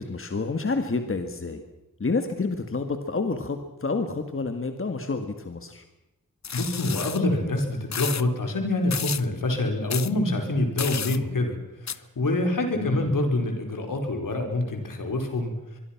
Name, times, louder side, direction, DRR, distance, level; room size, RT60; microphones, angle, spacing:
voice 1, 0.0-1.6 2.0-5.8 12.7-13.2, left 3 dB, 40° left, 7 dB, 1.8 m, -29 dB
sound 1, 6.4-7.2 7.9-8.2 8.9-9.2 9.9-10.1 10.8-11.2 11.9-12.0, left 7 dB, 60° left, 0.8 m, -31 dB
voice 2, 6.5-11.6 11.8-15.5, left 2 dB, 80° left, 4 dB, 4.7 m, -26 dB
25.0 x 22.5 x 6.0 m, 0.99 s
wide cardioid pair, 115°, 32 cm